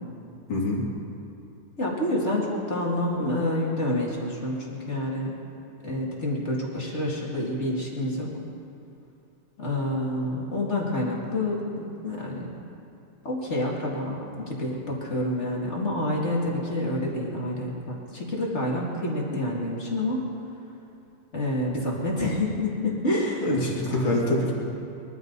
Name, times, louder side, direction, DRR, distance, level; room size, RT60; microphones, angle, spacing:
voice 1, 0.5-0.8 23.4-24.5, left 1 dB, 90° left, -4 dB, 3.5 m, -25 dB
voice 2, 1.8-5.3 5.8-8.3 9.6-12.5 13.2-20.3 21.3-23.5 23.9-24.0, left 1 dB, 35° left, -4 dB, 2.5 m, -28 dB
22.5 x 14.5 x 4.1 m, 2.7 s
omnidirectional pair, 2.2 m